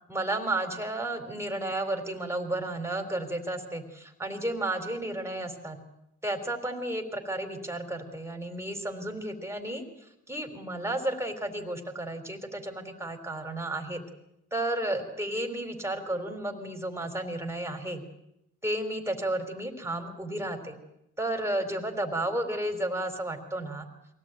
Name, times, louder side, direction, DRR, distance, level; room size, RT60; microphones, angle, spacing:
voice 1, 0.1-5.8 6.2-9.8 10.3-14.0 14.5-18.0 18.6-20.8 21.2-23.9, right 1 dB, 10° right, 5 dB, 4.0 m, -32 dB
23.5 x 17.5 x 9.1 m, 0.84 s
cardioid pair, 85°, 31 cm